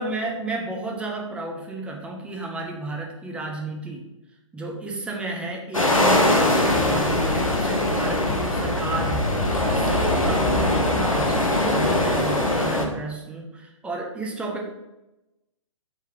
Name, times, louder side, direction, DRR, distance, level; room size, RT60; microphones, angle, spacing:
voice 1, 0.0-4.1 4.5-14.7, right 2 dB, 5° right, 0 dB, 0.5 m, -32 dB
sound 1, 5.7-12.9, left 1 dB, 90° left, 0.8 m, -21 dB
3.9 x 2.8 x 4.4 m, 0.97 s
figure-of-eight pair, 120°, 17 cm